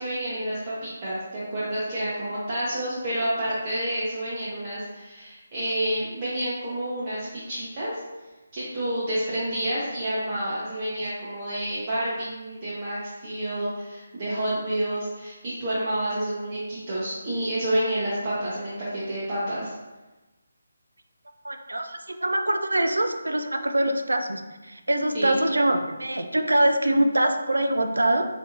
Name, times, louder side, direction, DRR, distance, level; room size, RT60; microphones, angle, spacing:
voice 1, 0.0-8.0 8.5-19.7 25.1-25.3, right 1 dB, 30° right, -10 dB, 0.7 m, -29 dB
voice 2, 21.4-28.3, right 1 dB, 75° right, 6 dB, 0.3 m, -24 dB
3.8 x 2.6 x 2.5 m, 1.2 s
figure-of-eight pair, 150°, 0 cm